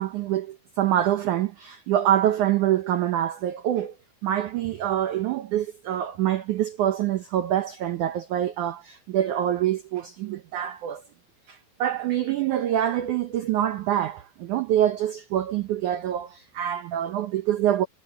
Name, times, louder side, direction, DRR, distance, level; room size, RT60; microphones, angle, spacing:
voice 1, 0.0-3.9 4.2-11.0 11.5-17.9, right 11 dB, 85° right, 1.7 m, -25 dB
omnidirectional pair, 4.9 m